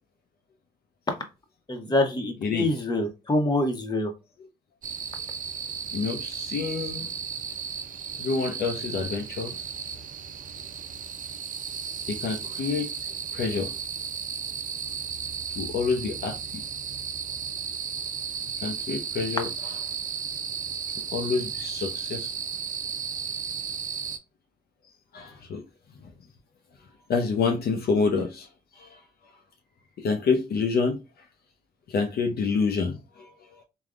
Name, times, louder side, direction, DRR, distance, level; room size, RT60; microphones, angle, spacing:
voice 1, 1.7-4.1, left 2 dB, 25° left, 0.9 m, -25 dB
voice 2, 2.4-2.7 5.9-7.1 8.2-9.6 12.1-12.9 13.3-13.7 15.5-16.6 18.6-19.5 21.1-22.3 25.1-25.6 26.0-26.1 27.1-28.5 28.7-29.0 30.0-31.0 31.9-33.6, left 5 dB, 60° left, 0.6 m, -27 dB
sound 1, 4.8-24.2, right 7 dB, 50° right, 0.5 m, -34 dB
3.5 x 2.3 x 2.4 m
supercardioid pair, 65°, 18 cm